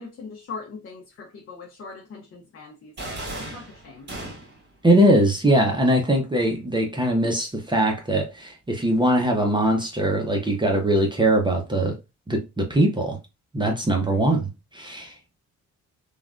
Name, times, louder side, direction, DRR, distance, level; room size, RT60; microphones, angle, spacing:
voice 1, 0.0-4.1, left 4 dB, 45° left, 0.7 m, -41 dB
sound 1, 3.0-4.7, right 1 dB, 35° right, 1.9 m, -36 dB
voice 2, 4.8-11.9 12.3-13.2 13.5-15.1, right 1 dB, 15° right, 0.7 m, -21 dB
3.1 x 2.3 x 2.4 m
cardioid pair, 90°, 30 cm